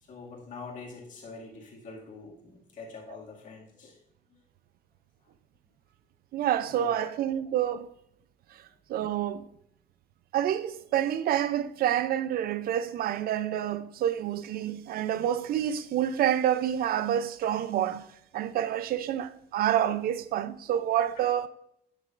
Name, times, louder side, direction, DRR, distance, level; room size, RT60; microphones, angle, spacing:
voice 1, 0.1-4.0 4.3-4.4 5.2-5.3 6.7-7.1 8.7-8.8, left 4 dB, 50° left, 2.2 m, -45 dB
voice 2, 6.3-7.9 8.5-8.6 8.9-9.5 10.3-18.1 18.3-21.5, right 10 dB, 60° right, 0.6 m, -28 dB
11.0 x 6.7 x 2.5 m
cardioid pair, 110°, 17 cm